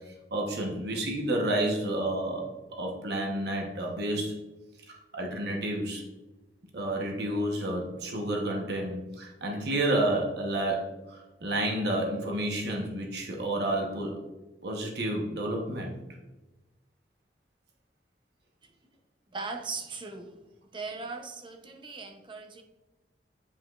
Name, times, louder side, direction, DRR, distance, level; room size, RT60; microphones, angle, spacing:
voice 1, 0.3-2.4 2.8-4.3 4.9-6.0 6.7-14.2 14.6-15.9, right 1 dB, 65° right, 0 dB, 1.0 m, -30 dB
voice 2, 19.3-20.5 20.7-22.6, right 4 dB, 30° right, 4 dB, 0.7 m, -39 dB
8.4 x 4.9 x 2.4 m, 1.1 s
head